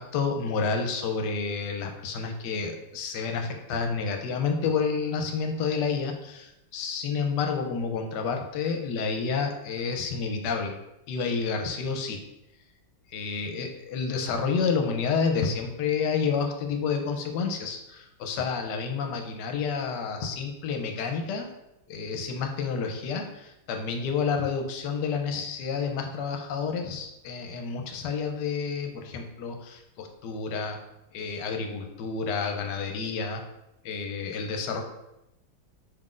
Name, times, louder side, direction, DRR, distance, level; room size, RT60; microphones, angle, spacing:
voice 1, 0.0-10.7 11.1-12.2 13.1-21.5 21.9-30.8 31.1-33.4 33.8-34.8, left 5 dB, 75° left, 4 dB, 1.2 m, -29 dB
5.1 x 3.8 x 2.4 m, 0.90 s
omnidirectional pair, 2.0 m